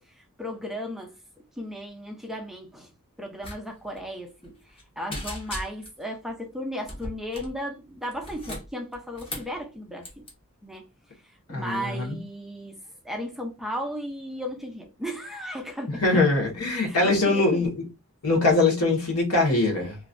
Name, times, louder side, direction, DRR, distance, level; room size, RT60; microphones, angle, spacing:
voice 1, 0.4-1.2 1.6-2.9 3.2-10.3 10.6-10.9 11.5-12.8 13.0-16.2 16.8-17.7, equal, ahead, 0.6 m, -35 dB
sound 1, 3.4-3.6 3.8-4.0 4.4-4.8 5.1-6.0 6.8-7.6 8.1-9.6 10.0-10.3, left 1 dB, 25° left, 0.9 m, -37 dB
voice 2, 11.5-12.2 16.0-17.8 18.2-20.0, left 2 dB, 80° left, 1.5 m, -22 dB
3.1 x 2.6 x 2.5 m
head